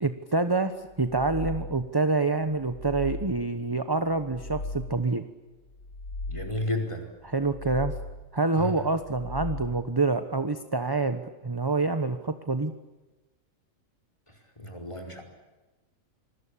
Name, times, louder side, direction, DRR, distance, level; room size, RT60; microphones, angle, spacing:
voice 1, 0.0-5.2 7.2-7.9 8.3-12.7, right 3 dB, 20° right, 9 dB, 1.1 m, -27 dB
sound 1, 0.9-2.0 2.5-3.6 4.1-5.2 5.7-6.8 7.3-8.4 8.9-10.0, left 2 dB, 60° left, 4.5 m, -38 dB
voice 2, 6.3-7.1 8.6-8.7 14.6-15.2, left 1 dB, 20° left, 4 dB, 5.0 m, -32 dB
27.0 x 21.0 x 8.6 m, 1.1 s
omnidirectional pair, 1.4 m